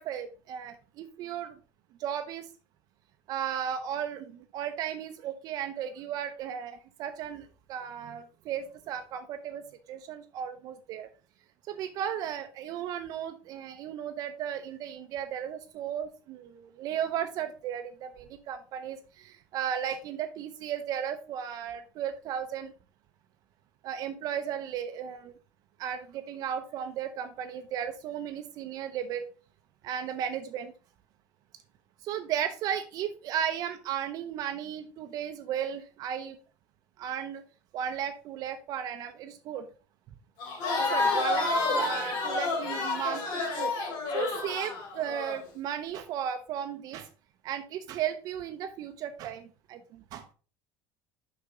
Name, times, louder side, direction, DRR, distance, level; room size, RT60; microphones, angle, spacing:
voice 1, 0.0-1.6 2.0-2.5 3.3-11.1 11.7-22.7 23.8-25.3 25.8-29.3 29.8-30.7 32.0-36.4 37.0-37.4 37.7-39.7 40.8-43.7 44.1-47.1 47.4-50.3, right 9 dB, 55° right, 8 dB, 0.7 m, -35 dB
Crowd, 40.4-45.4, left 3 dB, 70° left, 2.8 m, -29 dB
6.6 x 5.8 x 3.7 m, 0.36 s
cardioid pair, 135°, 8 cm